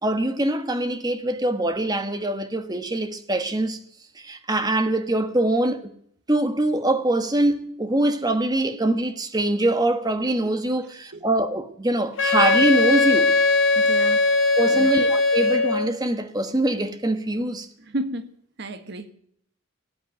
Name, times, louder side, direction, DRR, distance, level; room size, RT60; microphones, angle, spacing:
voice 1, 0.0-3.8 4.2-5.9 6.3-13.3 14.6-17.7, right 1 dB, 20° right, 1.2 m, -23 dB
voice 2, 10.8-11.3 11.9-12.0 13.7-14.3 14.7-15.1 17.8-18.3 18.6-19.1, right 1 dB, 55° right, 1.4 m, -33 dB
Wind instrument woodwind instrument, 12.2-15.9, left 3 dB, 65° left, 1.5 m, -19 dB
18.5 x 8.8 x 9.0 m
head